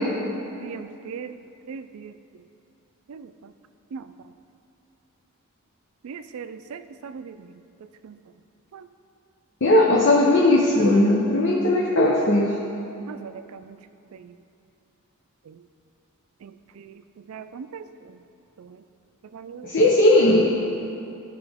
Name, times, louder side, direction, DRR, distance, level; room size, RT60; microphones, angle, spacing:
voice 1, 0.6-1.4 1.7-2.1 3.1-3.3 3.9-4.0 6.0-7.3 8.0-8.1 13.1-13.8 16.4-16.5 16.8-16.9 17.3-17.8 19.3-19.7, right 6 dB, 80° right, 11 dB, 0.4 m, -38 dB
voice 2, 9.6-12.5 19.6-20.5, left 1 dB, 60° left, -3 dB, 0.7 m, -18 dB
12.5 x 4.9 x 3.5 m, 2.7 s
head